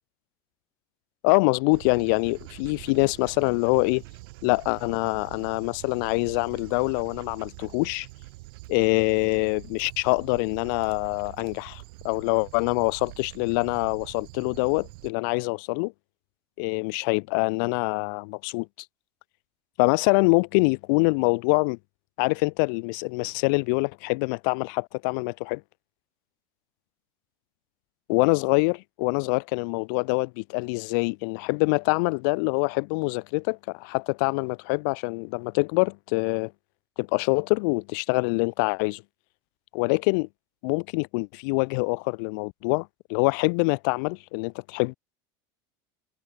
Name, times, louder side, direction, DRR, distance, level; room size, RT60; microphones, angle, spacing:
voice 1, 1.2-4.0 4.4-8.1 8.7-15.9 16.6-18.7 19.8-21.8 22.2-25.6 28.1-36.5 37.0-39.0 39.7-40.3 40.6-44.9, left 33 dB, 55° left, 0.4 m, -25 dB
Dog, 1.7-15.1, right 24 dB, 65° right, 2.0 m, -45 dB
supercardioid pair, 165°, 13 cm